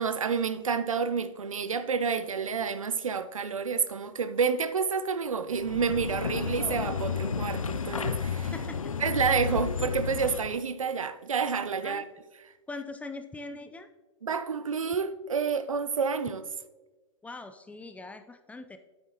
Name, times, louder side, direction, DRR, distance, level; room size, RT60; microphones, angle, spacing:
voice 1, 0.0-8.5 9.0-12.1 14.2-16.4, right 6 dB, 85° right, 0.6 m, -29 dB
sound 1, 5.5-10.6, left 5 dB, 90° left, 0.5 m, -32 dB
voice 2, 8.5-8.9 11.8-12.0 12.7-13.9 17.2-18.8, left 3 dB, 10° left, 0.5 m, -41 dB
8.6 x 8.6 x 3.0 m
hypercardioid pair, 110°, 17 cm